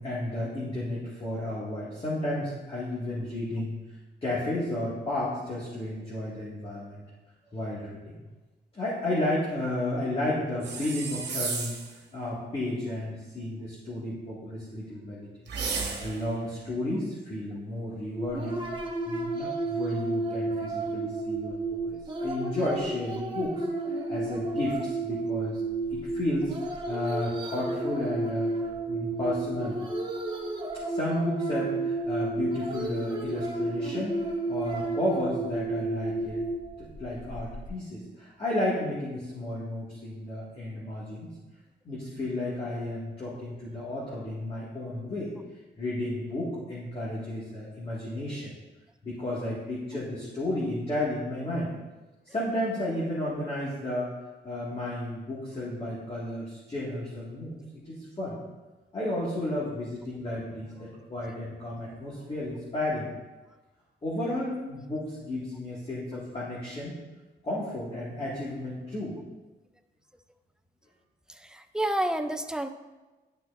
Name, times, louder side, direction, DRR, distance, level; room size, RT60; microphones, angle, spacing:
voice 1, 0.0-3.8 4.2-7.0 7.5-8.2 8.7-15.5 16.0-18.7 19.1-25.6 25.9-29.8 30.9-36.4 36.8-41.3 41.8-45.3 45.8-48.5 49.0-51.7 52.2-54.1 54.4-58.4 58.9-63.2 64.0-66.9 67.4-69.2, left 1 dB, 30° left, -8 dB, 1.9 m, -32 dB
sound 1, 10.6-12.0 15.5-16.3, right 5 dB, 65° right, 1.3 m, -33 dB
sound 2, 18.1-37.7, right 2 dB, 25° right, 1.3 m, -32 dB
voice 2, 71.3-72.7, right 1 dB, 5° right, 7 dB, 0.4 m, -29 dB
11.5 x 6.1 x 2.5 m, 1.2 s
cardioid pair, 115°, 19 cm